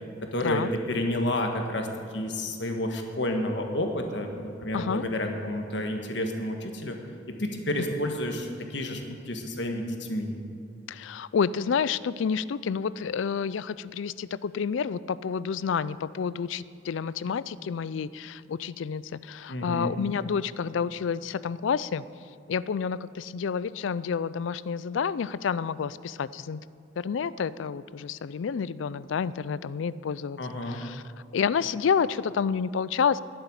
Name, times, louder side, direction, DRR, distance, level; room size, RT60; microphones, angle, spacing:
voice 1, 0.2-1.9 2.1-7.0 7.3-10.4 19.5-20.0 30.4-30.8, left 1 dB, 65° left, 4 dB, 1.6 m, -30 dB
voice 2, 4.7-5.0 10.9-22.0 22.5-26.6 27.0-30.4 30.7-31.0 31.3-33.2, left 6 dB, 85° left, 18 dB, 0.4 m, -29 dB
11.0 x 7.9 x 9.9 m, 2.3 s
head